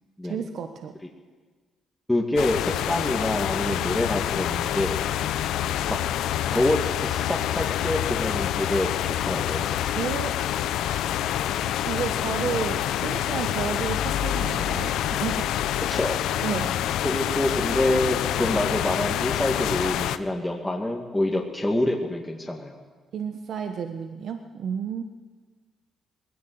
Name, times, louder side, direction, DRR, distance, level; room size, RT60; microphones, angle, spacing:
voice 1, 0.2-0.9 10.0-10.4 11.9-15.5 16.4-16.7 21.3-21.4 23.1-25.0, right 7 dB, 65° right, 6 dB, 1.2 m, -31 dB
voice 2, 2.1-5.0 5.9-6.0 6.5-9.7 13.1-13.2 15.9-16.2 17.0-22.8, left 1 dB, 10° left, -1 dB, 2.2 m, -26 dB
sound 1, 2.4-20.2, left 11 dB, 85° left, 0.8 m, -27 dB
20.0 x 17.0 x 7.9 m, 1.5 s
cardioid pair, 90°, 0 cm